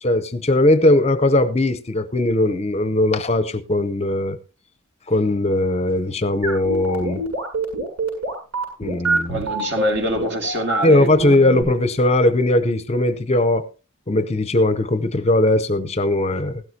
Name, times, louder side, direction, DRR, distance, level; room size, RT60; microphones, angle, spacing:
voice 1, 0.0-4.4 5.1-7.2 8.8-9.4 10.8-13.6 14.1-16.6, left 1 dB, 30° left, 0.6 m, -19 dB
sound 1, 6.4-11.6, right 2 dB, 85° right, 7.5 m, -25 dB
voice 2, 9.3-11.4, right 1 dB, 55° right, 2.2 m, -25 dB
16.0 x 12.5 x 2.8 m
head